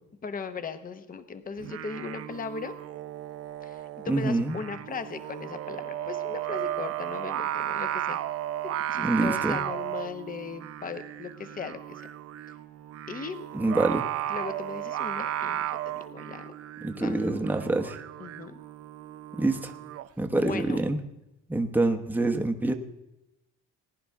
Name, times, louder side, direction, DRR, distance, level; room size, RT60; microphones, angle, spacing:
voice 1, 0.2-2.8 3.6-8.2 8.6-12.1 13.1-13.5 14.3-16.5 16.9-17.5 18.2-18.6 20.3-20.8, left 5 dB, 25° left, 10 dB, 0.8 m, -38 dB
Singing, 1.6-20.1, right 12 dB, 50° right, 0.5 m, -34 dB
voice 2, 4.1-4.6 9.0-9.6 13.5-14.1 16.8-18.0 19.3-19.7 20.2-21.0 21.5-22.7, right 2 dB, 5° right, 4 dB, 0.9 m, -26 dB
19.5 x 10.0 x 3.5 m, 0.91 s
cardioid pair, 110°, 32 cm